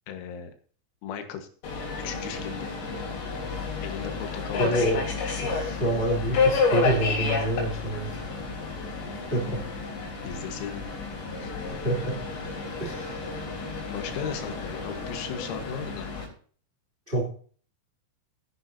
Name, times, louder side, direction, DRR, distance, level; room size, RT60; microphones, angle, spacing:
voice 1, 0.1-0.5 1.0-1.5 2.0-2.7 3.8-4.8 10.2-10.8 11.4-11.7 13.9-16.1, left 8 dB, 90° left, 6 dB, 4.3 m, -36 dB
Subway metro underground, 1.6-16.2, left 4 dB, 60° left, 5.7 m, -31 dB
voice 2, 4.6-5.0 5.4-8.2 9.3-9.6 11.7-12.2 12.8-13.2 17.1-17.3, right 1 dB, 15° right, -3 dB, 2.1 m, -27 dB
16.5 x 10.5 x 2.8 m, 0.44 s
omnidirectional pair, 5.9 m